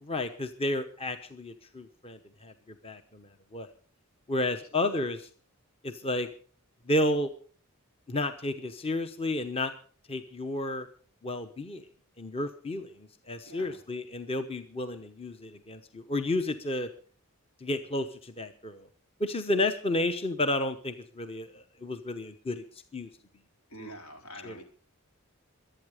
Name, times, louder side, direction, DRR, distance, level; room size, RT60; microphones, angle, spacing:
voice 1, 0.0-3.7 4.3-5.3 5.8-6.3 6.9-7.3 8.1-9.7 10.1-10.9 11.2-11.8 12.2-16.9 17.6-18.9 19.2-22.6 22.9-23.1 24.4-24.5, left 1 dB, 25° left, 9 dB, 1.0 m, -32 dB
voice 2, 4.7-5.0 13.5-13.8 23.7-24.6, equal, 85° left, 3 dB, 4.2 m, -46 dB
23.5 x 9.1 x 5.0 m, 0.43 s
head